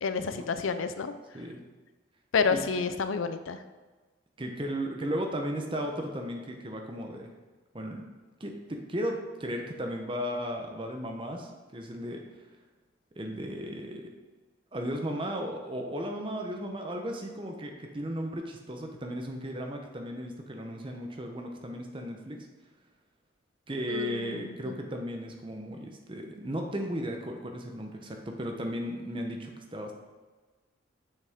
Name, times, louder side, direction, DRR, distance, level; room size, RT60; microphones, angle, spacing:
voice 1, 0.0-1.1 2.3-3.6 23.9-24.7, left 5 dB, 90° left, 10 dB, 0.5 m, -29 dB
voice 2, 4.4-7.3 7.7-8.0 8.4-12.2 13.2-14.1 14.7-22.5 23.7-29.9, equal, 25° right, 2 dB, 0.8 m, -35 dB
6.7 x 5.9 x 3.5 m, 1.3 s
head